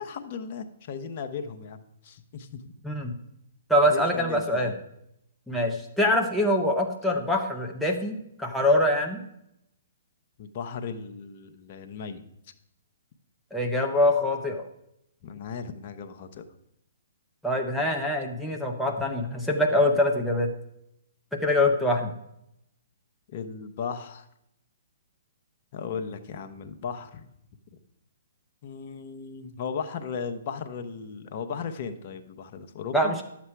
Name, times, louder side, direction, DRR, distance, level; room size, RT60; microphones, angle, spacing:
voice 1, 0.0-1.8 2.0-2.7 3.9-4.7 10.4-12.2 15.2-16.4 23.3-24.3 25.7-27.3 28.6-33.1, left 6 dB, 45° left, 8 dB, 1.1 m, -36 dB
voice 2, 3.7-4.7 5.5-9.2 13.5-14.6 17.4-20.5 21.3-22.2 32.9-33.2, left 1 dB, ahead, -1 dB, 1.0 m, -24 dB
11.0 x 7.3 x 4.7 m, 0.80 s
hypercardioid pair, 135°, 0 cm